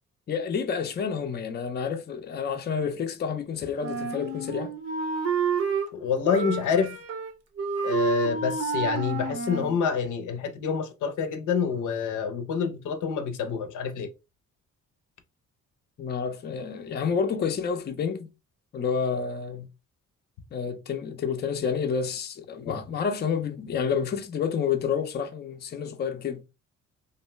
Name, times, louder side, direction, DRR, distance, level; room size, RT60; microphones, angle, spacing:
voice 1, 0.3-4.7 16.0-18.3 18.7-19.7 20.5-26.4, left 6 dB, 35° left, 0.5 m, -29 dB
Wind instrument woodwind instrument, 3.8-5.9 6.3-7.3 7.6-9.8, right 5 dB, 55° right, 0.7 m, -29 dB
voice 2, 5.9-7.0 7.8-14.1 22.7-22.8, left 6 dB, 80° left, 0.6 m, -27 dB
2.5 x 2.2 x 3.0 m
cardioid pair, 90°, 30 cm